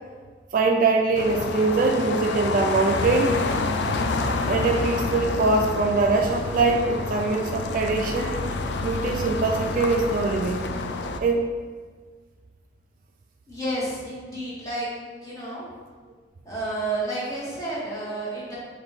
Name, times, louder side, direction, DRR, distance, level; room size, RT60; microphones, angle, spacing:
voice 1, 0.5-3.3 4.5-8.4 8.8-10.6 11.2-11.4, right 3 dB, 50° right, 3 dB, 0.3 m, -23 dB
sound 1, 1.1-11.2, left 3 dB, 70° left, 0.3 m, -28 dB
voice 2, 13.5-14.9 15.2-15.6 16.4-18.6, right 1 dB, 20° left, -8 dB, 1.4 m, -30 dB
4.0 x 2.6 x 4.7 m, 1.5 s
head